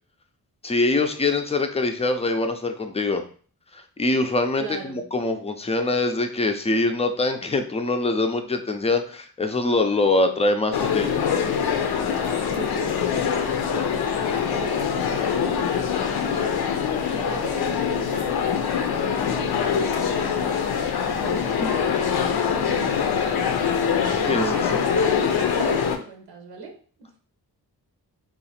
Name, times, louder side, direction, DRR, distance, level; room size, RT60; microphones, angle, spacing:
voice 1, 0.6-3.2 3.7-11.1 21.6-21.7 24.1-24.4, left 2 dB, 15° left, 6 dB, 0.4 m, -23 dB
voice 2, 4.6-5.1 12.3-16.7 17.1-23.8 24.2-26.7 27.0-27.1, right 4 dB, 90° right, 2 dB, 0.9 m, -38 dB
sound 1, 10.7-26.0, left 7 dB, 85° left, 0.5 m, -24 dB
2.8 x 2.5 x 4.2 m, 0.44 s
wide cardioid pair, 90°, 37 cm